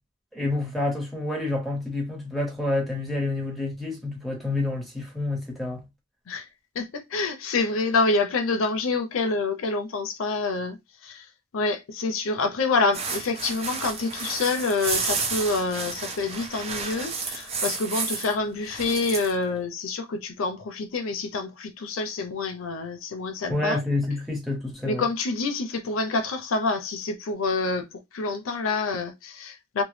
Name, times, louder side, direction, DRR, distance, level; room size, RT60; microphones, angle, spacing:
voice 1, 0.3-5.8 23.5-25.0, left 2 dB, ahead, 1.0 m, -28 dB
voice 2, 6.7-11.3 11.5-23.8 24.8-27.9 28.1-29.8, left 3 dB, 85° left, 0.5 m, -27 dB
sound 1, 12.9-18.3 18.7-19.3, right 4 dB, 30° right, 0.7 m, -31 dB
2.9 x 2.1 x 3.1 m
head